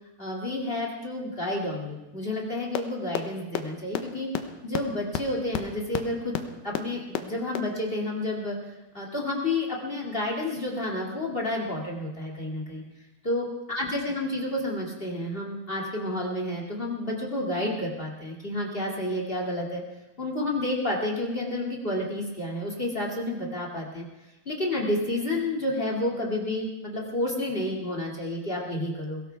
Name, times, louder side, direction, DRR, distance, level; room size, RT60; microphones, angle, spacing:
voice 1, 0.2-4.3 4.6-6.3 6.6-8.6 8.9-12.8 13.2-19.8 20.2-24.0 24.4-29.2, left 1 dB, 30° left, 0 dB, 1.0 m, -30 dB
sound 1, 2.7-2.8 3.1-3.2 3.5-3.6 3.9-4.0 4.3-4.4 4.7-4.8 5.1-5.2 5.5-5.6 5.9-6.0 6.3-6.4 6.7-6.8 7.1-7.2 7.5-7.6, left 13 dB, 75° left, 2.8 m, -26 dB
23.0 x 17.0 x 3.4 m, 1.0 s
omnidirectional pair, 4.9 m